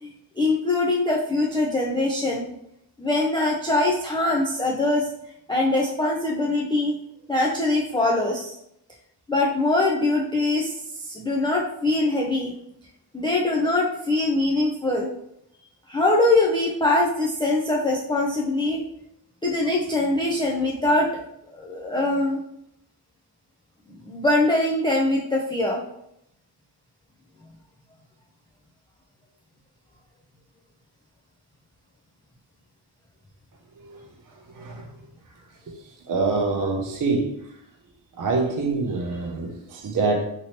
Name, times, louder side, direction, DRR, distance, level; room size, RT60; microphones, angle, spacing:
voice 1, 0.0-2.4 3.0-5.1 5.5-7.0 7.3-8.5 9.3-12.5 13.1-15.1 15.9-18.8 19.4-21.1 21.5-22.4 24.0-25.8, left 2 dB, 10° left, -4 dB, 0.3 m, -23 dB
voice 2, 34.6-34.9 36.1-37.3 38.2-40.2, right 3 dB, 45° right, 2 dB, 0.5 m, -25 dB
2.9 x 2.8 x 2.8 m, 0.76 s
wide cardioid pair, 110°, 49 cm